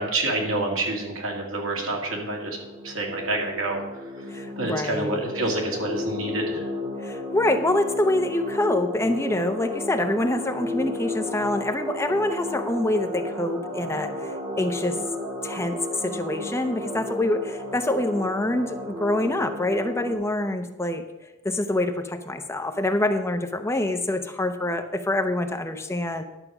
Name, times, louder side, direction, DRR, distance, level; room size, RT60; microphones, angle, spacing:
voice 1, 0.0-2.6 2.8-3.8 4.6-6.7, right 2 dB, 75° right, 0 dB, 2.3 m, -27 dB
sound 1, 1.7-20.1, left 1 dB, 25° right, 2.3 m, -33 dB
voice 2, 4.3-5.2 7.0-14.3 14.6-15.0 15.4-21.0 21.4-26.2, left 1 dB, 15° left, 6 dB, 0.7 m, -26 dB
11.0 x 6.7 x 5.9 m, 1.0 s
head